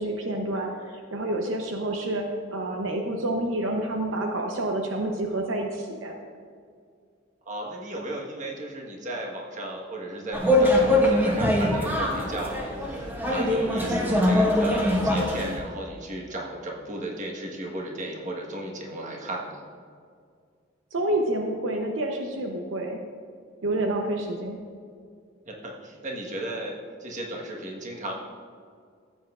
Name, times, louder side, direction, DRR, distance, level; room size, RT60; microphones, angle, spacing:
voice 1, 0.0-2.3 2.5-6.2 20.9-23.0 23.6-24.6, right 1 dB, 80° right, 2 dB, 0.8 m, -28 dB
voice 2, 7.4-19.6 25.4-28.1, right 1 dB, 40° right, -1 dB, 1.4 m, -35 dB
sound 1, 10.3-15.6, left 1 dB, 10° right, 1.2 m, -23 dB
14.5 x 8.0 x 2.4 m, 2.2 s
head